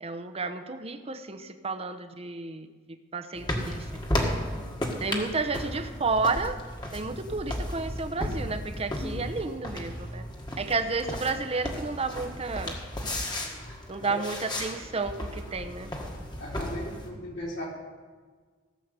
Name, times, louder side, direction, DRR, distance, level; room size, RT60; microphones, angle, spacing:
voice 1, 0.0-2.7 3.1-3.8 4.2-4.4 5.0-6.6 6.9-10.2 10.6-12.7 13.9-15.9, right 4 dB, 30° right, 8 dB, 0.8 m, -31 dB
sound 1, 3.3-17.1, left 1 dB, 20° left, 1.7 m, -34 dB
voice 2, 16.4-17.7, left 1 dB, 65° left, -4 dB, 4.2 m, -37 dB
16.5 x 7.6 x 6.8 m, 1.5 s
head